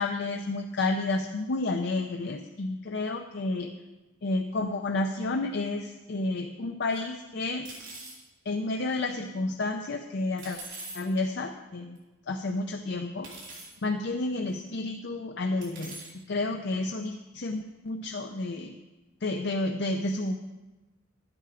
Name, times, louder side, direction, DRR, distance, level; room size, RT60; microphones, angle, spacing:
voice 1, 0.0-3.7 4.2-7.7 8.5-10.6 10.9-12.0 12.3-13.3 13.8-18.7 19.2-20.3, left 2 dB, 60° left, 4 dB, 0.5 m, -30 dB
sound 1, 6.9-7.0 7.6-8.2 10.4-11.0 12.0-12.1 13.2-13.7 14.5-14.6 15.6-16.1, right 2 dB, 70° right, 3.5 m, -42 dB
11.0 x 8.8 x 4.9 m, 1.1 s
head